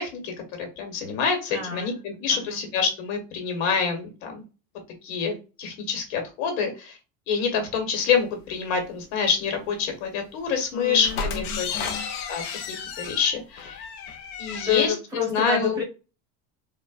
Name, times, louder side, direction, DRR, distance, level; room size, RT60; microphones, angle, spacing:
voice 1, 0.0-4.4 5.0-7.0 7.3-11.7 11.9-12.0 12.3-13.8 14.4-15.8, left 6 dB, 80° left, 4 dB, 1.3 m, -27 dB
voice 2, 1.5-2.0 2.3-2.6 10.7-12.1 14.6-15.8, left 7 dB, 10° right, -3 dB, 1.6 m, -29 dB
sound 1, 11.0-14.9, left 5 dB, 60° left, 0.7 m, -33 dB
3.7 x 2.1 x 2.3 m, 0.31 s
cardioid pair, 150°, 31 cm